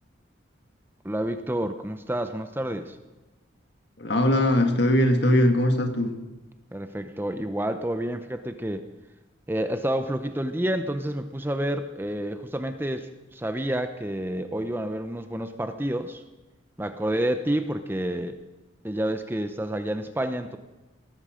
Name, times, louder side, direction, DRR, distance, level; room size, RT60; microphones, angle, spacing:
voice 1, 1.0-3.0 6.7-8.8 9.5-16.2 16.8-18.4 18.8-20.6, right 1 dB, 10° right, 8 dB, 0.7 m, -29 dB
voice 2, 4.0-6.1, left 1 dB, 55° left, 5 dB, 1.9 m, -21 dB
18.0 x 14.0 x 5.1 m, 1.1 s
head